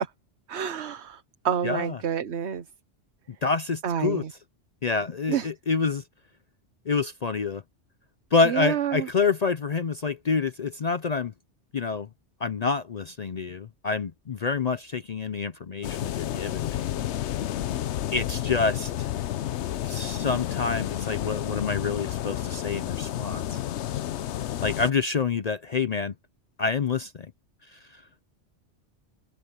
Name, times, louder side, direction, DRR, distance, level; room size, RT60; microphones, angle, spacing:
voice 1, 0.5-2.6 3.8-4.3 5.3-5.5 8.5-9.1, right 8 dB, 65° right, 1.2 m, -28 dB
voice 2, 1.6-2.0 3.4-4.2 4.8-6.0 6.9-7.6 8.3-11.3 11.7-12.1 12.4-16.8 18.1-19.1 19.8-23.6 24.6-26.1 26.6-27.3 27.7-28.0, left 4 dB, 50° left, 0.5 m, -27 dB
sound 1, 15.8-24.9, left 12 dB, 70° left, 0.9 m, -31 dB
omnidirectional pair, 1.3 m